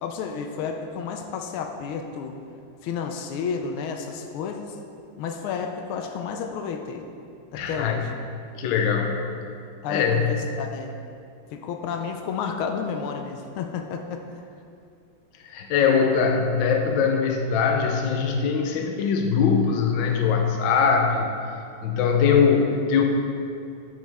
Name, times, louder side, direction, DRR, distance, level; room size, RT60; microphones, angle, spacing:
voice 1, 0.0-2.4 2.8-4.8 5.2-7.0 7.5-8.0 9.8-10.9 11.5-14.2, left 6 dB, 90° left, 4 dB, 1.5 m, -31 dB
voice 2, 7.5-8.0 8.6-9.2 9.9-10.2 15.4-21.3 21.8-23.0, left 6 dB, 70° left, 3 dB, 1.4 m, -21 dB
11.0 x 5.3 x 3.4 m, 2.4 s
omnidirectional pair, 2.3 m